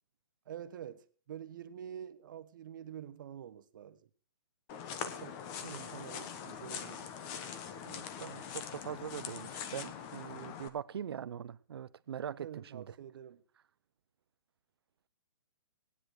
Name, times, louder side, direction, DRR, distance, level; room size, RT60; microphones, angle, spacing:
voice 1, 0.5-4.0 5.0-7.4 12.3-13.4, right 9 dB, 50° right, 1.1 m, -47 dB
sound 1, 4.7-10.7, left 8 dB, 25° left, 1.1 m, -43 dB
voice 2, 7.8-12.9, right 8 dB, 65° right, 0.7 m, -42 dB
18.0 x 9.9 x 4.8 m
hypercardioid pair, 160°, 14 cm